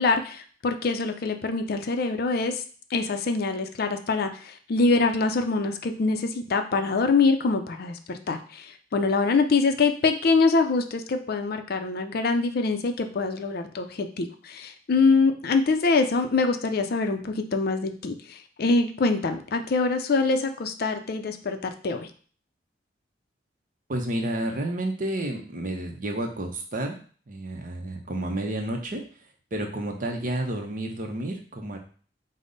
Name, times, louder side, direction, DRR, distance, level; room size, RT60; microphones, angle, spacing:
voice 1, 0.0-2.6 2.9-22.1, left 3 dB, 55° left, 7 dB, 0.5 m, -24 dB
voice 2, 23.9-27.0 27.3-29.0 29.5-31.8, right 1 dB, 45° right, 3 dB, 0.7 m, -30 dB
5.2 x 2.1 x 3.9 m, 0.43 s
head